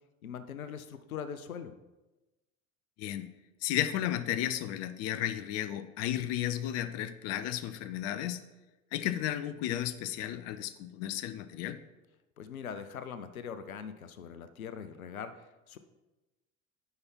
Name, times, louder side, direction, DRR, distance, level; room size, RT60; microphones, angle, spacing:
voice 1, 0.2-1.7 12.4-15.8, left 7 dB, 80° left, 11 dB, 0.7 m, -42 dB
voice 2, 3.6-8.4 8.9-11.8, left 12 dB, 40° left, 12 dB, 0.6 m, -33 dB
9.5 x 5.8 x 4.5 m, 1.1 s
figure-of-eight pair, 70°, 42 cm